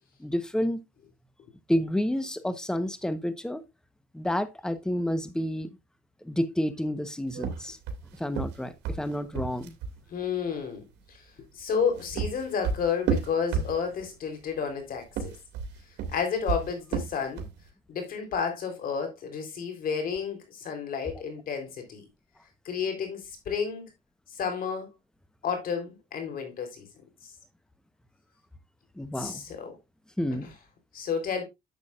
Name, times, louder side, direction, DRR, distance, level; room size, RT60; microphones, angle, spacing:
voice 1, 0.2-0.8 1.7-3.7 4.1-5.7 6.2-7.8 8.2-9.7 29.0-29.4 30.2-30.5, equal, 5° left, 1.0 m, -29 dB
sound 1, 7.3-10.0 11.7-14.1 15.0-17.6, right 6 dB, 85° right, 2.2 m, -32 dB
voice 2, 10.1-10.8 11.1-11.2 11.5-15.4 16.1-17.4 17.9-22.1 22.7-23.9 24.3-24.9 25.4-26.9 29.2-29.7 30.9-31.4, left 6 dB, 60° left, 3.8 m, -31 dB
11.0 x 7.3 x 2.5 m
cardioid pair, 110°, 17 cm